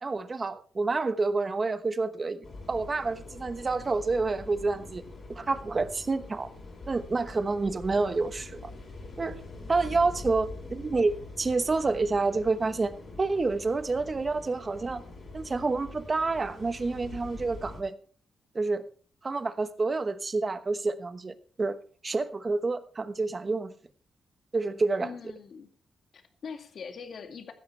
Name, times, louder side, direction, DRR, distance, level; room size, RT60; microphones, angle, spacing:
voice 1, 0.0-5.0 5.3-6.5 6.9-8.7 9.2-9.4 9.7-12.9 13.2-15.0 15.3-17.9 18.5-18.8 19.2-21.8 22.0-23.7 24.5-25.1, right 3 dB, 30° right, 1.1 m, -28 dB
sound 1, 2.4-17.8, left 2 dB, 40° left, 5.1 m, -44 dB
voice 2, 9.8-10.2 25.0-25.7 26.1-27.5, left 6 dB, 55° left, 2.2 m, -43 dB
15.5 x 12.5 x 3.4 m
cardioid pair, 115°, 0 cm